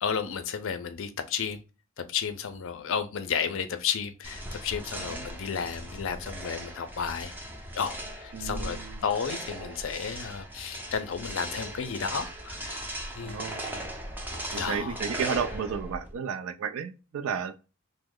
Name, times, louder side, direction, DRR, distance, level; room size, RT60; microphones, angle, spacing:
voice 1, 0.0-1.6 2.0-7.3 7.8-8.8 9.0-12.8 13.2-13.4 14.3-15.0, left 7 dB, 65° left, 0.4 m, -32 dB
sound 1, 4.2-16.1, right 1 dB, 10° right, 0.5 m, -38 dB
voice 2, 8.3-9.0 13.2-13.9 14.5-17.6, right 6 dB, 70° right, 0.4 m, -33 dB
3.0 x 2.0 x 3.6 m
head